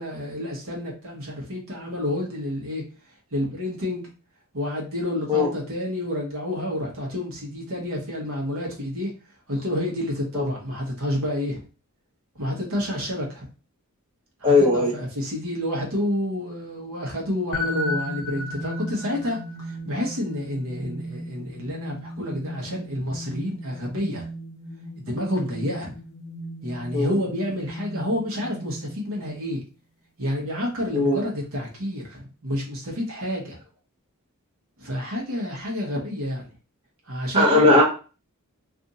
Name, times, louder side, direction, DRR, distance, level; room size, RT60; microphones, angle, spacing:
voice 1, 0.0-2.8 3.3-4.0 4.5-9.1 9.5-11.6 12.4-13.5 14.4-24.3 25.0-25.9 26.6-29.6 30.2-33.6 34.8-36.5 37.1-37.6, left 1 dB, 65° right, -1 dB, 1.1 m, -29 dB
voice 2, 14.4-14.9 26.9-27.1 30.9-31.2 37.3-37.8, left 2 dB, 25° right, -3 dB, 0.9 m, -18 dB
sound 1, 17.5-29.3, left 1 dB, 70° left, 0.6 m, -35 dB
2.6 x 2.5 x 3.9 m, 0.35 s
head